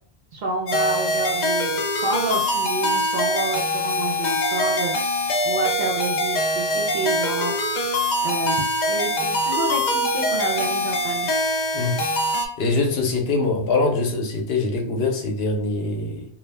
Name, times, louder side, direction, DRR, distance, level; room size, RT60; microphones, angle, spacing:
voice 1, 0.3-4.9 5.4-7.5 8.2-11.3, right 3 dB, 55° right, 0 dB, 0.6 m, -28 dB
sound 1, 0.7-12.5, left 1 dB, 55° left, 0.6 m, -23 dB
voice 2, 12.6-16.2, left 3 dB, 75° left, 2 dB, 0.9 m, -23 dB
2.3 x 2.1 x 3.2 m, 0.62 s
omnidirectional pair, 1.1 m